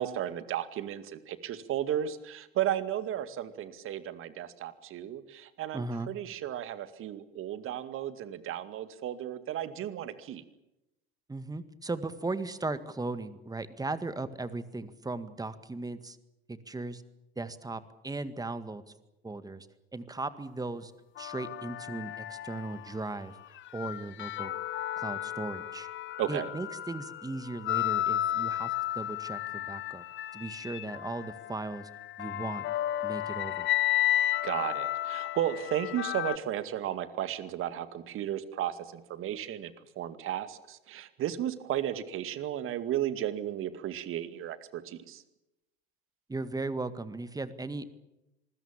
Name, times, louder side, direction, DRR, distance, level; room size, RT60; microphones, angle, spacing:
voice 1, 0.0-10.4 26.2-26.5 34.4-45.2, right 11 dB, 45° right, 12 dB, 2.2 m, -34 dB
voice 2, 5.7-6.1 11.3-16.2 16.5-17.0 17.4-18.8 19.2-19.7 19.9-20.9 21.2-23.4 23.7-24.5 25.0-25.9 26.3-30.0 30.3-31.9 32.2-32.7 33.0-33.7 46.3-47.9, right 3 dB, 10° right, 12 dB, 1.9 m, -37 dB
sound 1, 21.2-23.0 23.6-36.4, left 13 dB, 40° left, 1.2 m, -33 dB
26.5 x 21.0 x 7.4 m, 0.93 s
figure-of-eight pair, 70°, 30 cm